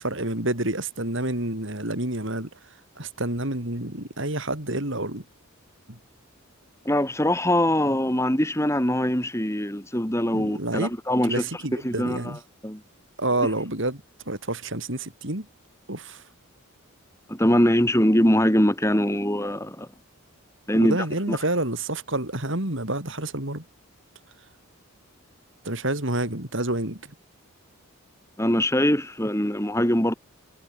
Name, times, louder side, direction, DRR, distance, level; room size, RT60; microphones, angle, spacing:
voice 1, 0.0-2.5 3.0-5.2 5.9-6.0 10.3-10.9 11.2-12.4 13.2-15.5 15.9-16.2 20.7-23.6 25.6-27.1, right 1 dB, 55° right, 4.3 m, -28 dB
voice 2, 6.8-11.4 11.8-12.3 12.6-12.8 17.3-19.9 20.7-21.0 21.3-21.4 28.4-30.1, equal, 15° left, 4.3 m, -22 dB
head